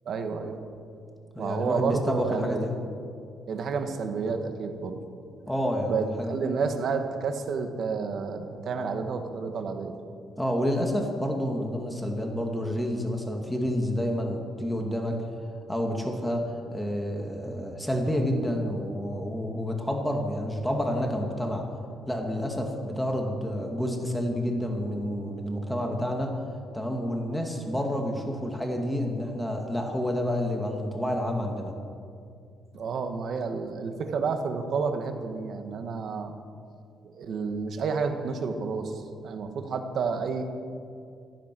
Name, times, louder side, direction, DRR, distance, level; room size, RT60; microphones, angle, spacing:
voice 1, 0.0-0.6 1.4-2.6 3.5-5.0 5.9-10.0 32.7-36.3 37.0-38.9 39.2-40.4, right 5 dB, 60° right, 6 dB, 1.7 m, -30 dB
voice 2, 1.3-2.7 5.5-6.4 10.4-15.2 15.7-21.7 22.1-26.3 26.7-31.7, equal, 5° left, 1 dB, 2.3 m, -29 dB
15.5 x 14.5 x 6.3 m, 2.4 s
cardioid pair, 90°, 0 cm